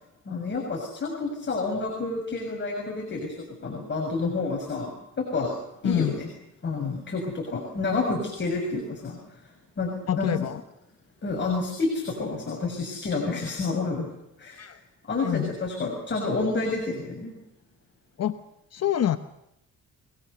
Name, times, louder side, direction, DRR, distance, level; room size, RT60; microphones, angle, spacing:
voice 1, 0.2-4.9 5.2-5.5 5.8-6.3 6.6-9.4 9.8-9.9 10.1-10.5 11.2-14.1 14.4-14.7 15.1-17.4, left 3 dB, 40° left, 1 dB, 6.5 m, -29 dB
voice 2, 5.8-6.2 10.1-10.6 14.6-14.8 15.2-15.5 18.2-18.4 18.7-19.2, left 11 dB, 55° left, 10 dB, 1.1 m, -26 dB
28.0 x 20.0 x 6.8 m, 0.84 s
cardioid pair, 90°, 30 cm